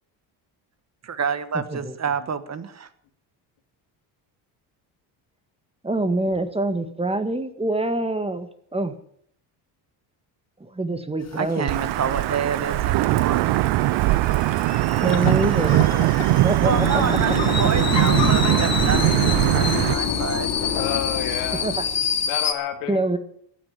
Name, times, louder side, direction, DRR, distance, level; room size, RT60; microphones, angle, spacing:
voice 1, 1.0-2.9 11.3-13.5 16.6-20.5, right 7 dB, 35° right, 12 dB, 1.4 m, -28 dB
voice 2, 1.5-1.9 5.8-8.9 10.6-11.7 15.0-15.9 16.4-17.4 19.5-19.6 21.5-21.8 22.9-23.2, right 2 dB, 15° right, 9 dB, 1.7 m, -25 dB
sound 1, 11.2-22.5, left 6 dB, 35° left, 1.9 m, -30 dB
Wind / Thunder / Rain, 11.7-19.9, right 17 dB, 65° right, 0.6 m, -20 dB
voice 3, 15.7-16.1 17.0-17.1 20.7-21.7 22.3-23.0, left 10 dB, 85° left, 6 dB, 2.7 m, -30 dB
sound 2, 16.7-22.3, left 7 dB, 65° left, 2.8 m, -27 dB
15.5 x 9.0 x 8.9 m, 0.66 s
cardioid pair, 105°, 45 cm